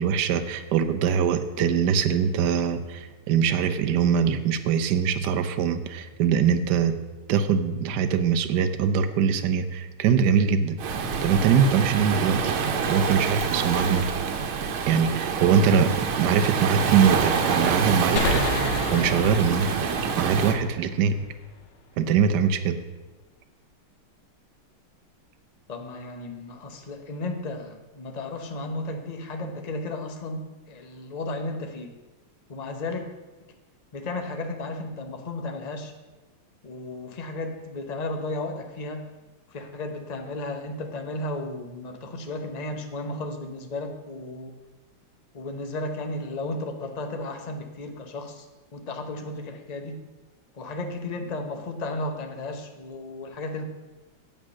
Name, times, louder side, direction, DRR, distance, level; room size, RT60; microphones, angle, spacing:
voice 1, 0.0-6.9 7.3-10.8 11.2-12.5 12.9-14.1 14.6-15.9 16.2-18.4 18.9-19.7 20.2-21.3 22.0-22.8, right 7 dB, 65° right, 7 dB, 1.2 m, -22 dB
Waves surf, 10.8-20.6, right 5 dB, 85° right, 1.9 m, -26 dB
sound 1, 18.2-21.6, left 3 dB, 85° left, 1.9 m, -31 dB
voice 2, 25.7-30.4 30.7-32.0 32.5-33.0 33.4-33.5 33.9-35.9 36.6-39.0 39.5-44.6 45.3-48.5 48.7-50.0 50.5-53.7, left 2 dB, 35° left, 5 dB, 0.6 m, -34 dB
8.9 x 7.8 x 6.3 m, 1.2 s
omnidirectional pair, 2.3 m